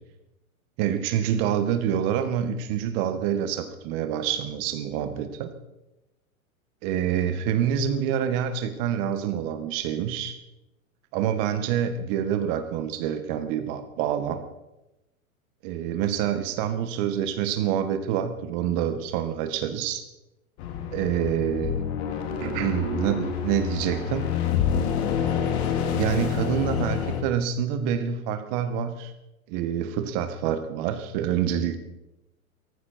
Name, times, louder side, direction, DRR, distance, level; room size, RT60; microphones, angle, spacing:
voice 1, 0.8-5.5 6.8-10.4 11.1-14.4 15.6-20.0 20.9-21.8 22.4-24.3 26.0-29.1 29.5-31.8, right 9 dB, 40° right, 9 dB, 2.0 m, -27 dB
sound 1, 20.6-27.2, left 8 dB, 50° left, 2.6 m, -27 dB
17.5 x 15.0 x 4.6 m, 0.95 s
hypercardioid pair, 135°, 43 cm